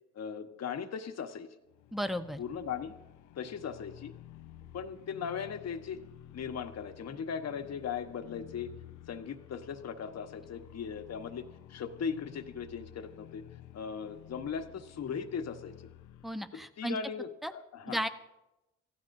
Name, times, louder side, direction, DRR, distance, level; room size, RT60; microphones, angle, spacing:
voice 1, 0.1-1.5 2.4-2.9 3.3-4.1 4.7-6.0 6.3-8.7 9.1-11.4 11.7-13.4 13.7-15.7 16.8-18.0, left 7 dB, 60° left, 6 dB, 1.3 m, -38 dB
sound 1, 1.7-16.4, left 13 dB, 80° left, 0.7 m, -52 dB
voice 2, 1.9-2.4 16.2-17.0 17.4-17.5 17.9-18.1, equal, ahead, 8 dB, 1.0 m, -34 dB
28.5 x 15.5 x 2.7 m, 0.97 s
cardioid pair, 90°, 30 cm